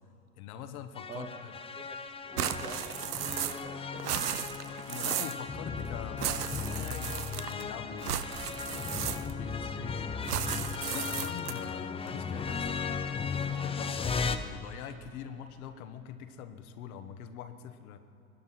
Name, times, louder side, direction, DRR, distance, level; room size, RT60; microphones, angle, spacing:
voice 1, 0.4-1.5 4.7-8.2 8.7-10.0 10.9-13.0 13.3-18.0, left 9 dB, 70° left, 9 dB, 1.2 m, -44 dB
sound 1, 1.0-14.4, left 5 dB, 15° left, 0.6 m, -36 dB
voice 2, 1.1-1.4 1.7-4.3, right 4 dB, 15° right, 6 dB, 0.8 m, -47 dB
sound 2, 2.4-3.7 4.0-5.4 6.2-7.6 8.0-9.5 10.2-11.7, right 10 dB, 90° right, 0.7 m, -35 dB
22.5 x 9.5 x 5.8 m, 2.9 s
hypercardioid pair, 85°, 45 cm